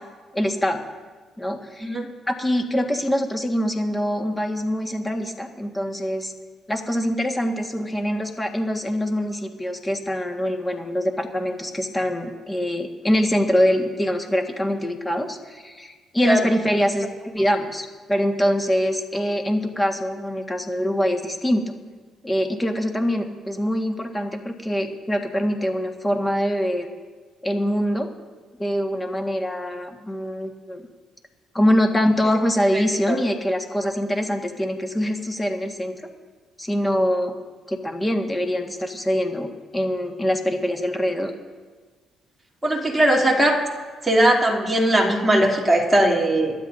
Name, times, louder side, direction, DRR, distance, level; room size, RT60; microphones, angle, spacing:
voice 1, 0.3-0.8 1.4-1.9 2.3-6.3 6.7-21.7 22.2-26.9 27.4-28.1 28.6-30.8 31.5-35.9 36.6-37.3 37.7-41.3, equal, 15° left, 4 dB, 1.6 m, -24 dB
voice 2, 32.7-33.2 42.6-43.6 44.0-46.5, right 1 dB, 15° right, -2 dB, 2.9 m, -19 dB
26.5 x 12.5 x 2.7 m, 1.4 s
cardioid pair, 90°, 0 cm